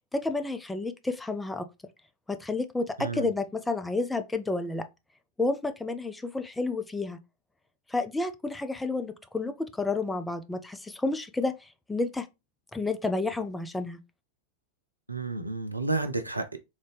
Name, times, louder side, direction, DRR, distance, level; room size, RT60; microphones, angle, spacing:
voice 1, 0.1-1.7 2.3-4.9 5.4-7.2 7.9-12.3 12.7-14.0, left 3 dB, 5° left, 0.4 m, -30 dB
voice 2, 3.0-3.3 15.1-16.6, right 3 dB, 85° right, 0.5 m, -31 dB
3.5 x 2.6 x 3.2 m
figure-of-eight pair, 90°, 0 cm